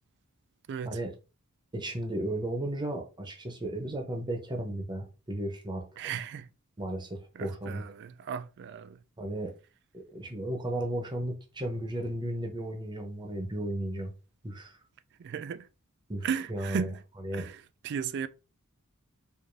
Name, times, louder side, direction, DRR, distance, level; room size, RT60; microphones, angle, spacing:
voice 1, 0.7-1.0 6.0-6.5 7.3-9.0 15.2-15.7 16.2-17.0 17.3-18.3, right 7 dB, 50° right, 0.3 m, -35 dB
voice 2, 1.7-5.8 6.8-7.8 9.2-9.5 9.9-14.1 14.4-14.8 16.1-16.9 17.2-17.5, right 1 dB, 20° right, 0.8 m, -34 dB
4.7 x 2.5 x 2.6 m
head